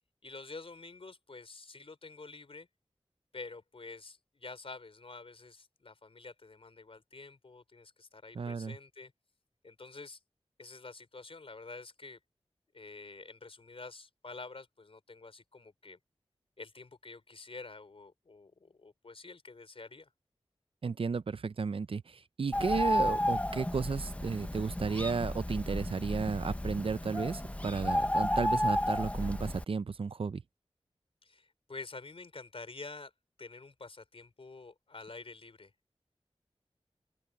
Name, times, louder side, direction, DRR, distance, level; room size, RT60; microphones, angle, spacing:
voice 1, 0.2-2.7 3.3-9.1 9.6-10.2 10.6-12.2 12.7-16.0 16.6-20.1 31.2-33.1 33.4-35.7, left 3 dB, 65° left, 4.3 m, -48 dB
voice 2, 8.3-8.8 20.8-22.0 22.4-30.4, right 5 dB, 60° right, 0.5 m, -33 dB
Bird, 22.5-29.6, left 1 dB, 15° left, 0.9 m, -32 dB
open air
wide cardioid pair, 75°, 11 cm